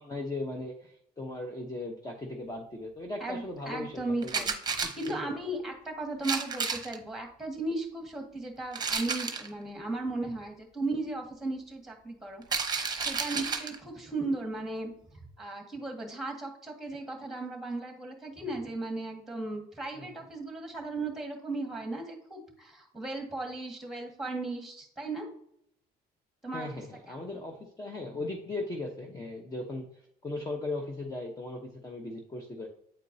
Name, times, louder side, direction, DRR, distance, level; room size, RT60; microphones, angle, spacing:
voice 1, 0.0-4.5 4.8-5.3 19.9-20.1 26.5-29.8 30.2-32.7, left 2 dB, 20° left, 2 dB, 0.9 m, -38 dB
voice 2, 3.2-4.5 4.9-25.3 26.4-26.7 27.1-27.4, right 2 dB, ahead, 1 dB, 1.6 m, -36 dB
sound 1, 4.2-5.1 6.2-7.0 8.7-9.5 12.4-13.8, right 5 dB, 25° right, 0.9 m, -32 dB
8.8 x 4.4 x 2.7 m, 0.70 s
cardioid pair, 110°, 17 cm